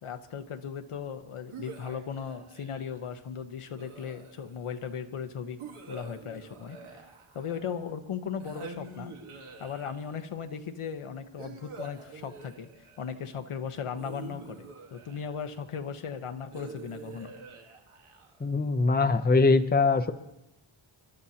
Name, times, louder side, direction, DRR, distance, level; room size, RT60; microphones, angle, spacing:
voice 1, 0.0-5.6 5.9-7.0 7.3-9.1 9.6-17.3, left 7 dB, 90° left, 7 dB, 1.1 m, -37 dB
sound 1, 1.5-3.0 3.7-4.7 5.6-7.8 8.4-10.2 11.4-13.1 13.9-15.6 16.5-18.5, right 4 dB, 80° right, 1.6 m, -46 dB
voice 2, 18.4-20.1, left 3 dB, 20° left, 10 dB, 0.6 m, -22 dB
28.0 x 12.0 x 2.8 m, 0.88 s
wide cardioid pair, 140°, 49 cm